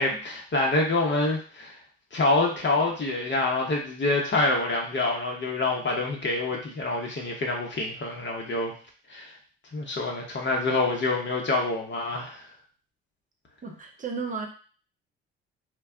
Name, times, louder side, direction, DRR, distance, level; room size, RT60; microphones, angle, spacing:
voice 1, 0.0-1.7 2.1-8.7 9.1-9.3 9.7-12.4, left 2 dB, 35° left, -1 dB, 0.9 m, -26 dB
voice 2, 13.6-14.5, right 5 dB, 25° right, 2 dB, 0.7 m, -33 dB
2.2 x 2.1 x 3.6 m, 0.41 s
hypercardioid pair, 50°, 30 cm